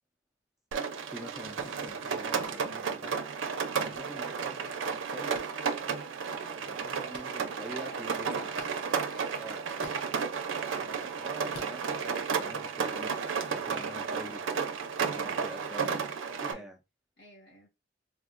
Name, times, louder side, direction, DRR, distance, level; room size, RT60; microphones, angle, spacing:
Rain, 0.7-16.5, right 6 dB, 85° right, 0.5 m, -33 dB
voice 1, 1.1-3.2 3.7-5.4 6.6-8.7 9.3-9.6 10.8-13.1 13.5-14.4 15.0-16.0 16.4-16.8, right 1 dB, ahead, 0.3 m, -46 dB
sound 1, 2.4-2.6 3.9-4.0 5.3-5.5 7.1-7.3 8.5-8.8 9.8-10.0 11.5-11.7, left 3 dB, 85° left, 0.6 m, -48 dB
voice 2, 7.7-8.2 9.1-10.0 16.4-16.7 17.2-17.7, left 1 dB, 60° left, 1.3 m, -52 dB
3.4 x 2.1 x 2.4 m
head